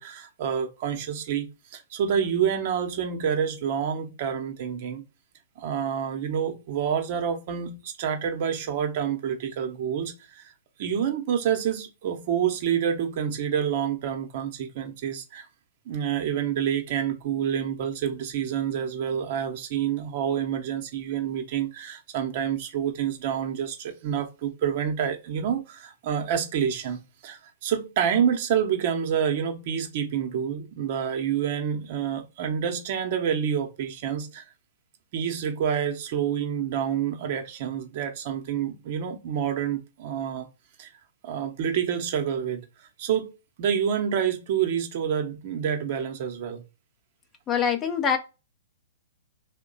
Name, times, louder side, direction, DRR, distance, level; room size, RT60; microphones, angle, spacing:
voice 1, 0.0-5.0 5.6-10.5 10.8-15.5 15.9-34.4 35.1-40.5 40.8-40.9 41.2-42.6 43.0-46.6, right 8 dB, 50° right, 0.8 m, -28 dB
voice 2, 47.5-48.2, left 7 dB, 20° left, 0.5 m, -24 dB
2.8 x 2.1 x 3.9 m
hypercardioid pair, 125°, 0 cm